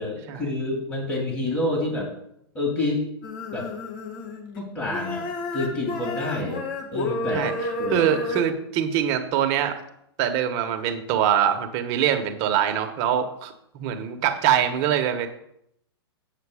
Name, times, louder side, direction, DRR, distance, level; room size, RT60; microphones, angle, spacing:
voice 1, 0.0-2.1 2.5-3.0 3.5-3.7 4.6-5.3 5.5-6.7 6.9-8.1, left 2 dB, 20° left, -1 dB, 2.3 m, -28 dB
sound 1, 3.2-4.6 4.9-8.5, left 2 dB, 50° left, 1.7 m, -31 dB
voice 2, 7.9-9.8 10.2-15.3, right 9 dB, 45° right, 6 dB, 1.2 m, -23 dB
8.4 x 6.3 x 4.9 m, 0.75 s
hypercardioid pair, 130°, 14 cm